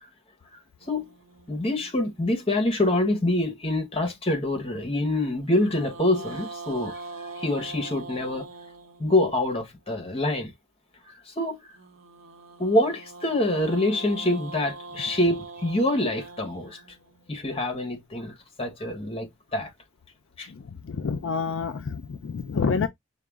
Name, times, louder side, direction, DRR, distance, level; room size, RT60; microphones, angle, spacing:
sound 1, 0.8-3.2 5.4-9.6 11.7-17.9, right 3 dB, 70° right, 1.0 m, -43 dB
voice 1, 1.5-8.5 9.0-10.5 11.1-11.6 12.6-16.8 17.3-19.7 20.4-20.5, left 1 dB, 25° left, 1.1 m, -26 dB
voice 2, 20.5-22.9, left 5 dB, 65° left, 0.4 m, -28 dB
4.9 x 2.3 x 3.4 m
head